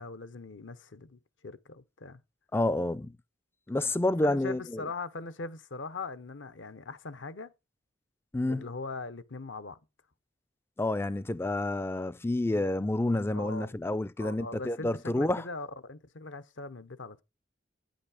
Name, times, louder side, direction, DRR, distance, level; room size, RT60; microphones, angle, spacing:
voice 1, 0.0-2.2 4.2-7.5 8.5-9.8 13.3-13.7 14.2-17.2, left 3 dB, 65° left, 0.8 m, -41 dB
voice 2, 2.5-3.1 3.7-4.8 8.3-8.7 10.8-15.4, left 1 dB, 10° left, 0.4 m, -29 dB
9.3 x 5.2 x 4.9 m
head